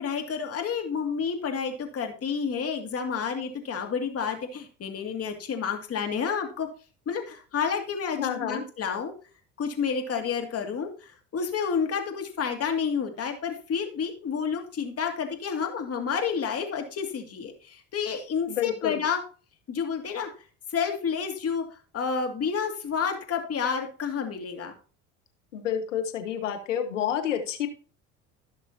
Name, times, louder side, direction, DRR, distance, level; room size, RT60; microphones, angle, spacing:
voice 1, 0.0-6.7 7.1-9.1 9.6-19.2 19.7-20.3 20.7-24.7, left 6 dB, 40° left, 4 dB, 2.4 m, -30 dB
voice 2, 8.2-8.6 18.5-19.0 25.5-27.7, left 9 dB, 85° left, 5 dB, 1.6 m, -29 dB
16.5 x 6.1 x 2.8 m, 0.38 s
hypercardioid pair, 70°, 36 cm